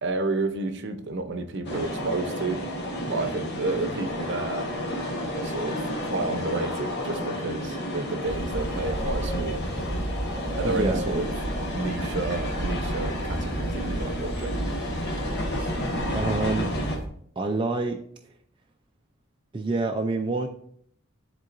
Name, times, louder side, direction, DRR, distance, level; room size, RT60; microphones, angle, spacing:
voice 1, 0.0-2.6 3.1-4.7 5.4-9.6 10.6-11.3 11.7-14.6, right 3 dB, 55° right, 7 dB, 0.7 m, -31 dB
sound 1, 1.6-17.0, left 1 dB, 55° left, 1.2 m, -31 dB
sound 2, 8.3-17.1, right 1 dB, ahead, 1.2 m, -33 dB
voice 2, 10.6-11.0 15.6-15.7 16.1-16.7 17.4-18.0 19.5-20.5, right 3 dB, 25° right, 2 dB, 0.4 m, -27 dB
10.5 x 3.7 x 2.6 m, 0.64 s
head